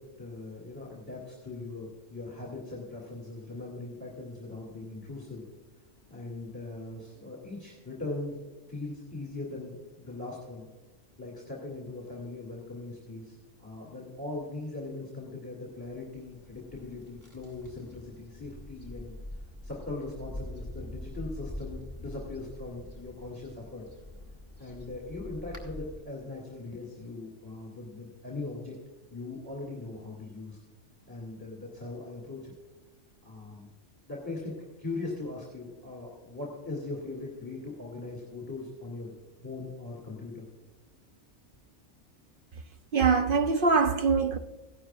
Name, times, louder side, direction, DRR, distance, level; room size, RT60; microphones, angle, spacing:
voice 1, 0.0-5.4 6.1-8.4 8.7-10.7 11.2-19.1 19.6-23.9 24.6-28.7 29.1-30.6 31.1-32.5 33.2-33.7 34.1-39.1 39.4-40.5, left 2 dB, 20° left, 2.6 m, -40 dB
sound 1, 15.8-26.0, left 1 dB, 15° right, 2.6 m, -44 dB
voice 2, 42.9-44.4, right 5 dB, 60° right, 0.6 m, -23 dB
16.0 x 11.5 x 2.4 m
omnidirectional pair, 1.2 m